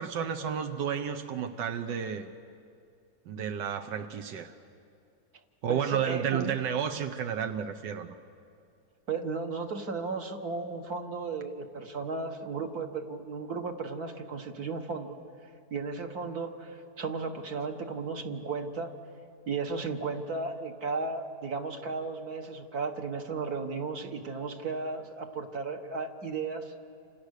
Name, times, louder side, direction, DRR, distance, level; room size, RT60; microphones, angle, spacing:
voice 1, 0.0-2.3 3.3-4.5 5.6-8.2, right 8 dB, 90° right, 6 dB, 1.6 m, -32 dB
voice 2, 5.7-6.5 9.1-15.2 15.7-18.9 19.5-26.7, right 4 dB, 60° right, 4 dB, 2.0 m, -35 dB
29.0 x 27.0 x 6.6 m, 2.4 s
omnidirectional pair, 1.9 m